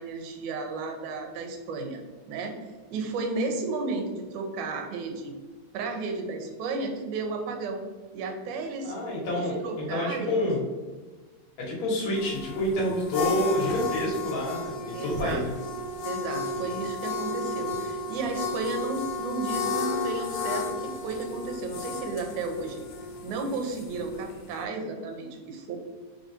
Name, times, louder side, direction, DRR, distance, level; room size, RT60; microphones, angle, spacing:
voice 1, 0.0-2.0 2.3-2.5 2.9-5.3 5.7-7.8 8.1-8.9 9.6-10.4 13.2-13.4 14.9-15.4 16.0-22.8 23.2-25.8, right 3 dB, 80° right, 3 dB, 2.2 m, -33 dB
voice 2, 8.8-10.7 11.6-15.5 16.6-16.8, left 1 dB, 70° left, -3 dB, 2.5 m, -28 dB
sound 1, 12.1-24.6, left 3 dB, 90° left, 2.1 m, -33 dB
4.9 x 3.9 x 2.7 m, 1.3 s
omnidirectional pair, 3.5 m